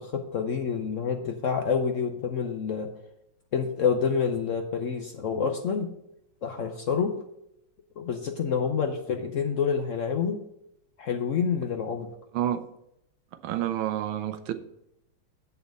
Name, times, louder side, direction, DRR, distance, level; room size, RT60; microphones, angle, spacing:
voice 1, 0.0-2.9 3.5-5.9 6.4-7.2 8.0-10.4 11.0-12.1, left 6 dB, 85° left, 5 dB, 0.6 m, -28 dB
voice 2, 13.4-14.5, right 11 dB, 75° right, 11 dB, 1.5 m, -28 dB
8.0 x 7.1 x 5.3 m, 0.80 s
omnidirectional pair, 2.3 m